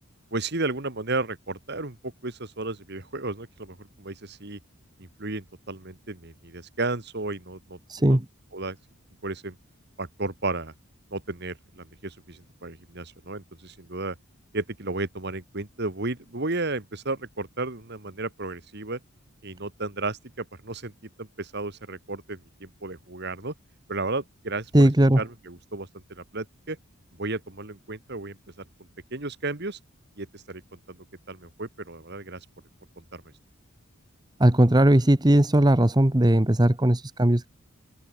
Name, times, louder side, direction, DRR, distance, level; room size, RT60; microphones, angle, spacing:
voice 1, 0.3-4.6 5.0-8.2 8.5-8.8 9.2-9.6 10.0-10.7 11.1-14.2 14.5-19.0 19.4-20.9 21.2-23.5 23.9-24.9 25.2-26.8 27.1-28.4 29.1-29.8 30.2-30.6 30.9-31.0 31.3-32.4 33.0-33.2, right 3 dB, 50° right, 2.1 m, -33 dB
voice 2, 7.9-8.2 24.7-25.2 34.4-37.5, right 1 dB, 20° right, 1.1 m, -18 dB
open air
head